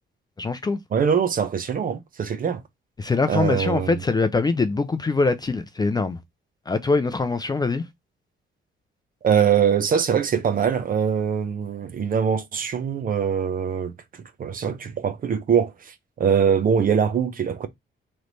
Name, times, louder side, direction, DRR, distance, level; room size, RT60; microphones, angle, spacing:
voice 1, 0.4-0.8 3.0-6.2 6.7-7.9, left 3 dB, 20° left, 0.4 m, -23 dB
voice 2, 0.9-2.6 3.3-4.0 9.2-17.7, right 7 dB, 40° right, 0.6 m, -23 dB
3.2 x 3.1 x 3.9 m
cardioid pair, 145°, 21 cm